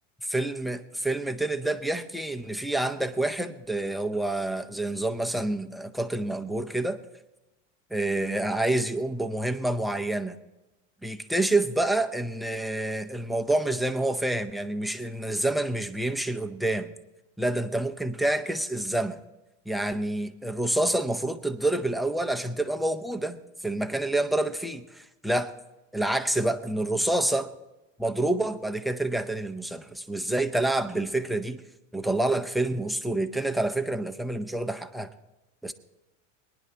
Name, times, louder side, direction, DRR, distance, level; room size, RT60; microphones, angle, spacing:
voice 1, 0.3-7.0 7.9-10.4 11.0-16.9 17.4-19.2 19.7-25.5 25.9-27.5 28.0-31.6 31.9-35.1 35.6-35.7, right 1 dB, ahead, 6 dB, 0.5 m, -28 dB
22.0 x 10.5 x 2.8 m, 1.0 s
supercardioid pair, 145°, 38 cm